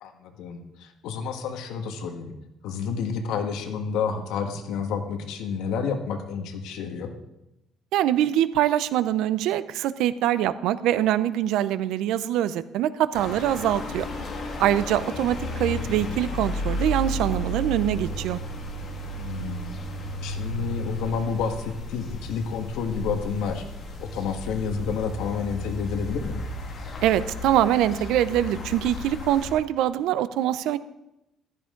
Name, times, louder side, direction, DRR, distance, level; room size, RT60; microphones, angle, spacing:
voice 1, 0.0-2.3 2.6-7.1 19.2-19.8 20.2-23.6 24.0-26.5, left 6 dB, 90° left, 5 dB, 1.6 m, -30 dB
voice 2, 7.9-14.1 14.6-18.4 27.0-30.8, right 12 dB, 80° right, 15 dB, 0.6 m, -24 dB
sound 1, 13.1-29.5, left 1 dB, 40° left, 2.2 m, -33 dB
14.5 x 13.0 x 3.9 m, 0.91 s
cardioid pair, 170°, 0 cm